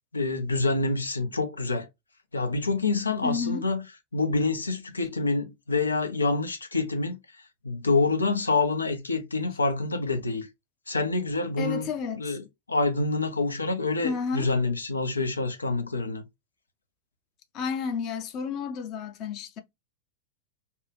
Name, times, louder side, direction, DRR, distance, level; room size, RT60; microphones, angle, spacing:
voice 1, 0.1-1.9 2.3-3.8 4.1-7.2 7.6-10.5 10.9-11.9 12.1-16.2, left 3 dB, 80° left, 0.6 m, -27 dB
voice 2, 3.2-3.7 11.6-12.4 14.0-14.5 17.5-19.6, left 5 dB, 35° left, 0.6 m, -31 dB
2.8 x 2.3 x 2.9 m
figure-of-eight pair, 90°, 0 cm